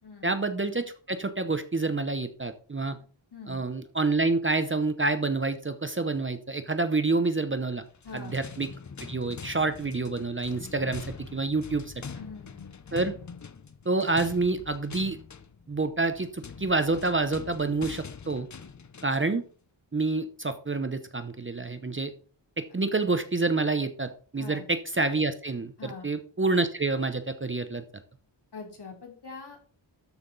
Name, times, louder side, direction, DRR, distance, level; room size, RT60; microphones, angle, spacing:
voice 1, 0.2-3.0 3.5-7.8 8.1-8.7 9.1-11.9 12.9-13.1 13.9-15.2 15.7-18.5 19.0-19.4 19.9-22.1 22.6-27.8, right 3 dB, 25° right, 10 dB, 0.8 m, -28 dB
voice 2, 3.3-3.6 8.0-8.4 12.0-12.7 24.4-24.6 25.8-26.1 28.5-29.6, left 4 dB, 60° left, 1 dB, 3.2 m, -43 dB
sound 1, 7.9-19.3, left 6 dB, 40° left, 0.7 m, -44 dB
13.0 x 5.8 x 4.0 m, 0.42 s
wide cardioid pair, 120°, 46 cm